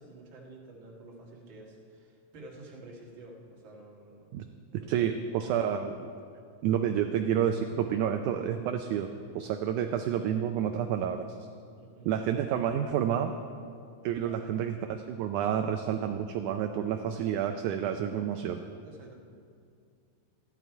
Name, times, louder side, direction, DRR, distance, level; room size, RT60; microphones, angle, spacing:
voice 1, 0.0-4.3 4.8-5.2 11.7-12.2 14.2-14.4 18.8-19.1, right 2 dB, 45° right, -2 dB, 2.0 m, -50 dB
voice 2, 4.9-6.1 6.6-11.2 12.1-13.3 14.0-18.6, right 9 dB, 80° right, 6 dB, 1.8 m, -29 dB
14.5 x 11.0 x 4.6 m, 2.4 s
omnidirectional pair, 3.9 m